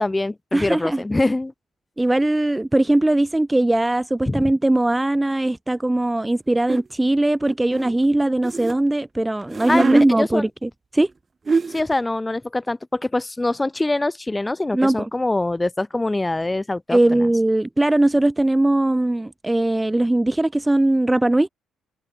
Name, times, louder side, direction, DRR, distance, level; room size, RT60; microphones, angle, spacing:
voice 1, 0.0-1.5 4.3-4.4 9.7-9.8 10.1-10.5 11.7-17.3, left 2 dB, 15° left, 3.2 m, -24 dB
voice 2, 0.5-1.0 2.0-11.1 14.7-15.1 16.9-21.5, right 1 dB, 15° right, 0.5 m, -20 dB
sound 1, 6.7-6.9 7.5-8.8 9.4-10.1 11.1-11.2 11.5-11.9, right 4 dB, 35° right, 2.5 m, -24 dB
open air
supercardioid pair, 55°, 0 cm